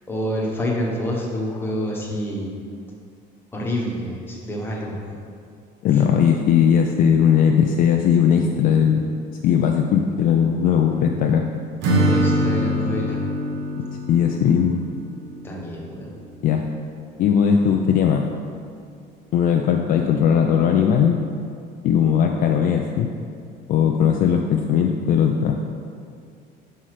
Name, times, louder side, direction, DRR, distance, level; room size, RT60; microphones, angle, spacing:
voice 1, 0.1-2.6 3.5-5.2 5.9-6.0 12.0-13.2 15.4-16.1, equal, 10° left, -3 dB, 1.0 m, -27 dB
voice 2, 5.8-9.1 9.4-11.4 14.1-14.8 16.4-16.7 17.2-18.3 19.3-21.2 21.8-23.1 23.7-25.6, left 8 dB, 45° left, 2 dB, 0.4 m, -18 dB
Acoustic guitar / Strum, 11.8-15.7, equal, 70° right, 1.1 m, -24 dB
5.4 x 4.9 x 5.8 m, 2.3 s
cardioid pair, 155°, 20 cm